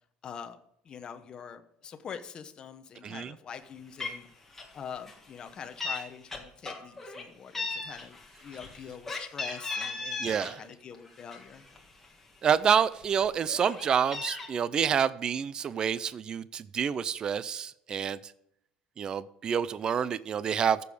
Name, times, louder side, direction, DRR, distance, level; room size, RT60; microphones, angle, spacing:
voice 1, 0.2-4.3 4.7-11.6, left 7 dB, 30° left, 7 dB, 0.9 m, -44 dB
Meow, 3.6-3.7 4.0-4.3 4.5-4.8 5.1-6.0 6.3-7.2 7.5-10.5 10.9-12.1 12.5-12.6 12.9-14.5, left 3 dB, 10° left, 1.7 m, -37 dB
voice 2, 10.2-10.6 12.4-18.2 19.0-20.8, right 7 dB, 25° right, 17 dB, 0.4 m, -28 dB
14.5 x 6.9 x 4.9 m, 0.74 s
cardioid pair, 170°, 3 cm